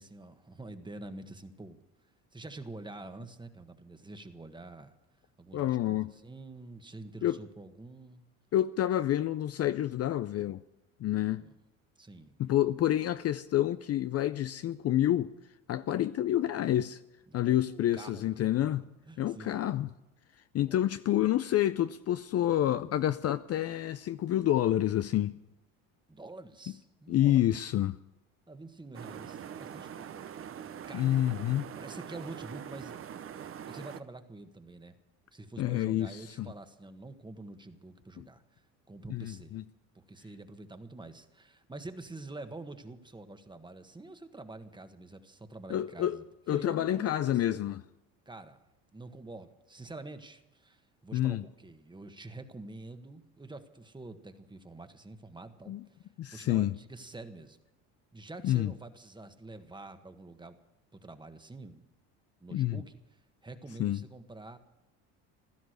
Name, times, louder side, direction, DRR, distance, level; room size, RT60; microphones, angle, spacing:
voice 1, 0.0-1.8 2.3-5.0 5.4-8.2 11.1-11.6 12.0-12.3 17.3-18.3 19.1-19.6 20.6-20.9 26.1-27.4 28.5-30.2 30.6-31.2 31.7-33.0 33.4-35.0 35.3-38.6 38.9-39.6 39.9-47.6 48.2-48.7 48.9-57.6 58.1-60.6 60.9-61.8 62.4-64.6, right 2 dB, 10° right, 1.5 m, -47 dB
voice 2, 5.5-6.1 7.2-7.4 8.5-10.6 11.0-11.4 12.4-15.3 15.7-17.0 17.3-18.8 19.2-19.9 20.5-25.3 27.1-28.0 30.9-31.6 35.6-36.5 38.2-38.3 39.1-39.6 45.7-46.2 46.5-47.8 51.1-51.4 55.7-55.8 56.2-56.7 58.4-58.7 62.5-62.8 63.8-64.0, left 12 dB, 40° left, 0.6 m, -28 dB
sound 1, 28.9-34.0, right 8 dB, 35° right, 0.9 m, -43 dB
16.0 x 12.5 x 6.6 m
supercardioid pair, 90°, 37 cm